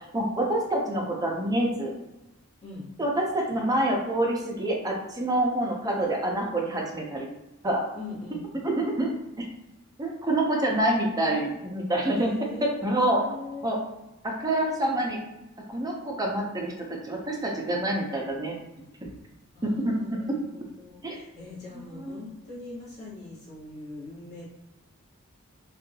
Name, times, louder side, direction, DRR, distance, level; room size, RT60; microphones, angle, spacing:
voice 1, 0.1-1.9 3.0-7.3 7.6-7.8 8.6-9.5 10.0-12.3 12.8-13.2 13.6-13.8 14.2-15.2 15.7-18.6 19.6-19.9 21.0-21.2 21.9-22.2, right 1 dB, 15° right, -1 dB, 0.5 m, -27 dB
voice 2, 7.9-8.4 10.7-11.5 12.2-13.7 19.0-19.1 19.5-24.5, left 3 dB, 35° left, -9 dB, 1.2 m, -42 dB
2.7 x 2.3 x 2.7 m, 0.94 s
head